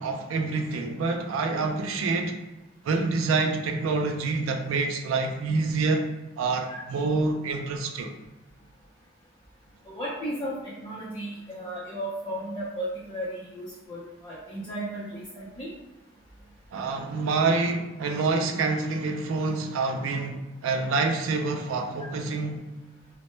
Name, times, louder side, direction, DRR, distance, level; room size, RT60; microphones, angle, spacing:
voice 1, 0.0-2.4 2.8-8.1 16.7-22.6, right 3 dB, 90° right, 0.3 m, -27 dB
voice 2, 9.9-15.7, right 1 dB, 20° left, 0.4 m, -35 dB
2.1 x 2.0 x 3.0 m
head